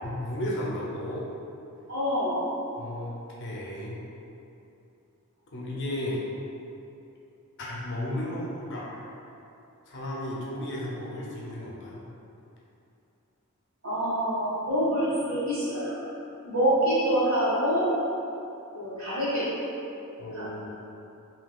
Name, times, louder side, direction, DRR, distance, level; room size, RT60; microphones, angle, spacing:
voice 1, 0.0-1.3 2.8-4.0 5.5-6.2 7.6-8.9 9.9-12.0 20.2-20.7, left 1 dB, 55° left, -5 dB, 0.6 m, -34 dB
voice 2, 1.9-2.5 13.8-16.0 16.4-17.9 18.7-19.6 20.3-20.5, equal, 65° right, -11 dB, 1.5 m, -26 dB
3.5 x 2.8 x 2.3 m, 2.8 s
head